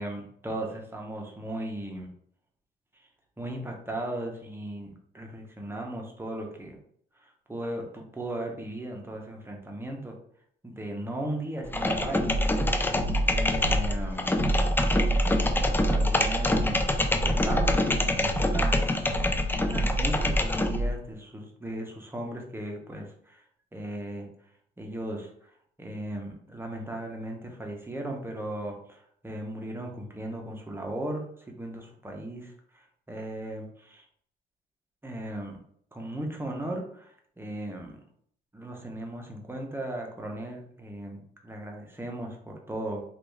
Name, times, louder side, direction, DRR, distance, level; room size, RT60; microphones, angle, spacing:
voice 1, 0.0-2.1 3.4-6.8 7.1-10.2 10.6-14.3 15.3-18.9 19.5-23.4 23.7-24.3 24.8-34.0 35.0-35.6 35.9-38.0 38.5-43.0, right 1 dB, 10° right, 1 dB, 0.8 m, -37 dB
sound 1, 11.6-21.0, left 1 dB, 10° left, 0.3 m, -25 dB
3.3 x 2.5 x 3.2 m, 0.64 s
cardioid pair, 90°, 20 cm